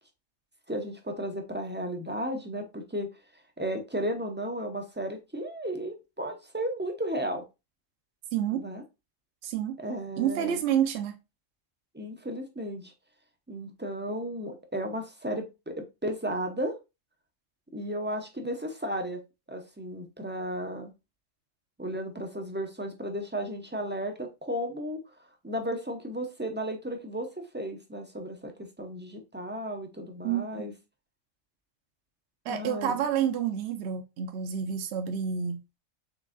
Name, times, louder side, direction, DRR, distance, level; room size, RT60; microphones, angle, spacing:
voice 1, 0.7-3.1 3.6-7.4 8.5-8.8 9.8-10.6 11.9-12.9 13.5-16.8 17.7-19.2 19.5-20.9 21.8-25.0 25.4-30.7 32.5-33.0, equal, 15° right, 0.3 m, -34 dB
voice 2, 8.3-8.7 9.4-9.8 10.2-11.1 30.2-30.7 32.5-35.6, right 9 dB, 65° right, 0.8 m, -29 dB
4.5 x 3.5 x 2.4 m
omnidirectional pair, 1.3 m